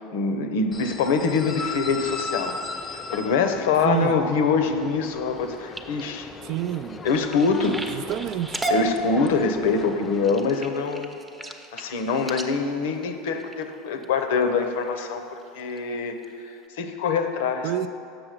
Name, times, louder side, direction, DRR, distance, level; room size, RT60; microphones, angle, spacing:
voice 1, 0.1-2.5 3.1-6.3 7.0-7.8 8.7-11.1 11.7-16.1 16.8-17.7, left 5 dB, 75° left, 7 dB, 0.7 m, -24 dB
sound 1, 0.7-10.3, left 4 dB, 25° left, 0.5 m, -37 dB
voice 2, 3.8-4.1 6.4-7.1 7.6-8.6 17.6-17.9, right 12 dB, 55° right, 13 dB, 0.3 m, -28 dB
sound 2, 5.4-14.0 14.6-15.0 15.4-15.8 16.2-16.3 16.6-16.7, right 2 dB, 10° right, 0.7 m, -34 dB
7.8 x 6.0 x 5.0 m, 2.5 s
hypercardioid pair, 90°, 0 cm